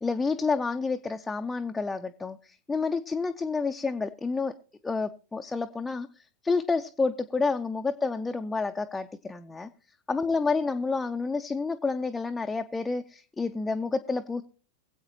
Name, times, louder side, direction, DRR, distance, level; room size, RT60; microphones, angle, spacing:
voice 1, 0.0-4.5 4.8-6.1 6.4-9.7 10.1-14.4, left 4 dB, 10° left, 5 dB, 0.5 m, -29 dB
23.5 x 8.0 x 2.9 m, 0.40 s
figure-of-eight pair, 90°, 0 cm